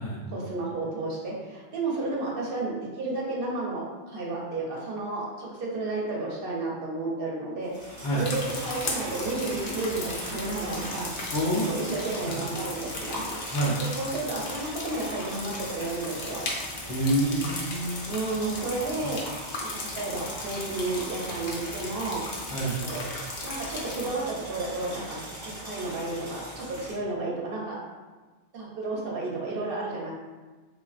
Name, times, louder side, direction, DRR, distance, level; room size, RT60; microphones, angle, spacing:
voice 1, 0.3-7.7 8.1-11.3 11.7-13.3 13.8-16.5 18.1-19.2 19.6-22.2 22.8-23.0 23.4-25.2 25.6-27.8 28.5-30.1, right 2 dB, 60° right, -4 dB, 0.8 m, -32 dB
sound 1, 7.6-26.9, equal, 20° right, 0.6 m, -40 dB
sound 2, 8.2-24.1, left 2 dB, 65° left, 0.8 m, -37 dB
voice 2, 11.3-11.8 12.2-12.4 13.5-13.8 16.9-18.0 19.0-19.1 22.5-22.8, right 1 dB, 90° left, -6 dB, 0.9 m, -27 dB
3.1 x 2.4 x 2.4 m, 1.3 s
omnidirectional pair, 1.2 m